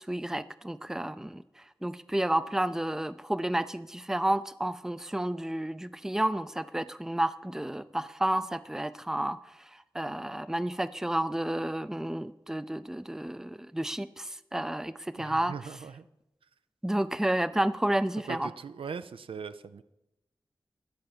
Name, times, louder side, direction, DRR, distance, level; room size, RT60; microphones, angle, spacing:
voice 1, 0.0-1.4 1.8-9.4 9.9-15.5 16.8-18.5, right 1 dB, 5° right, 15 dB, 0.4 m, -31 dB
voice 2, 15.2-16.1 18.3-19.8, right 6 dB, 90° right, 12 dB, 0.4 m, -40 dB
10.5 x 4.4 x 6.6 m, 0.91 s
wide cardioid pair, 50°, 9 cm